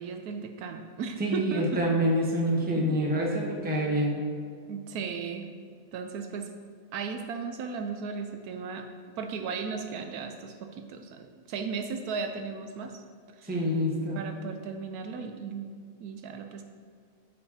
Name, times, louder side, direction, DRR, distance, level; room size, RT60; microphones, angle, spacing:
voice 1, 0.0-1.8 4.7-5.5 5.9-6.5 6.9-8.9 9.2-13.0 13.4-13.6 14.1-15.7 16.0-16.6, right 5 dB, 75° right, 6 dB, 1.0 m, -36 dB
voice 2, 1.2-4.1 13.4-14.2, equal, 10° right, -2 dB, 0.8 m, -26 dB
13.0 x 5.1 x 2.8 m, 2.1 s
omnidirectional pair, 1.7 m